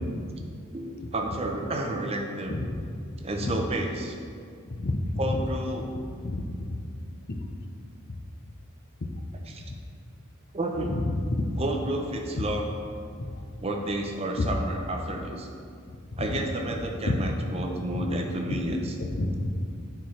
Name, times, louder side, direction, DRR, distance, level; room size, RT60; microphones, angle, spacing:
voice 1, 0.7-2.6 3.2-4.1 5.2-6.0 9.5-9.6 10.5-11.0 11.6-12.7 13.6-15.5 16.2-19.0, right 1 dB, 30° right, 2 dB, 0.7 m, -31 dB
voice 2, 6.2-6.5 7.3-7.4 11.3-11.5 13.2-13.3 14.4-14.5 16.2-16.3 17.1-17.2 17.9-18.0 18.5-18.6 19.1-19.6, left 2 dB, 50° left, 4 dB, 0.7 m, -28 dB
13.0 x 4.5 x 3.2 m, 2.3 s
head